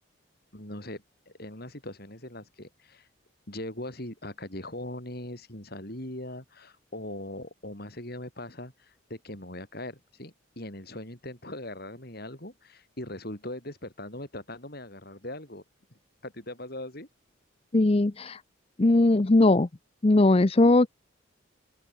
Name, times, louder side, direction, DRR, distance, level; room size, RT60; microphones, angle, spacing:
voice 1, 0.5-3.1 3.5-15.6 16.2-17.1, left 1 dB, 50° left, 6.0 m, -40 dB
voice 2, 17.7-18.4 18.8-19.7 20.0-20.9, left 2 dB, 30° left, 0.6 m, -20 dB
open air
head